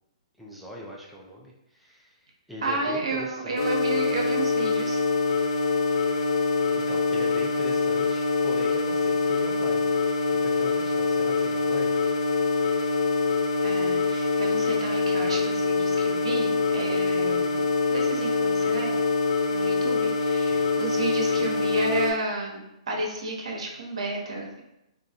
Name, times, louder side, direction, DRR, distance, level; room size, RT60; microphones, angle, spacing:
voice 1, 0.4-3.8 6.4-6.5 6.7-9.9 10.3-12.0, equal, ahead, -2 dB, 0.4 m, -41 dB
voice 2, 2.6-5.0 13.6-19.0 19.5-24.6, right 3 dB, 70° right, 0 dB, 0.7 m, -32 dB
sound 1, 3.6-22.1, left 3 dB, 50° left, 0.7 m, -24 dB
2.4 x 2.2 x 2.7 m, 0.88 s
hypercardioid pair, 125°, 3 cm